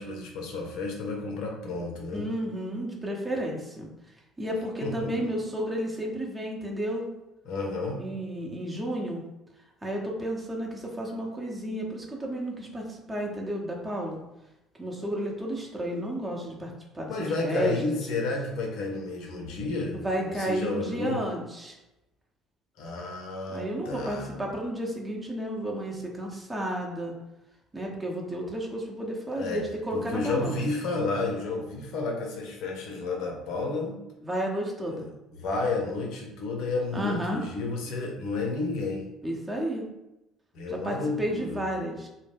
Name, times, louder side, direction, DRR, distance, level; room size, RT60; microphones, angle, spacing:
voice 1, 0.0-2.3 4.8-5.3 7.4-8.0 17.1-21.2 22.8-24.3 29.4-29.6 29.9-34.0 34.8-35.0 35.4-39.1 40.5-41.6, left 3 dB, 70° left, 0 dB, 0.6 m, -31 dB
voice 2, 2.1-3.9 4.4-7.1 8.0-9.2 9.8-14.2 14.8-18.0 19.9-21.8 23.5-27.1 27.7-30.6 34.2-35.1 36.9-37.4 39.2-39.8 40.7-42.1, right 1 dB, 20° right, -1 dB, 0.7 m, -32 dB
2.2 x 2.1 x 3.3 m, 0.95 s
hypercardioid pair, 60°, 0 cm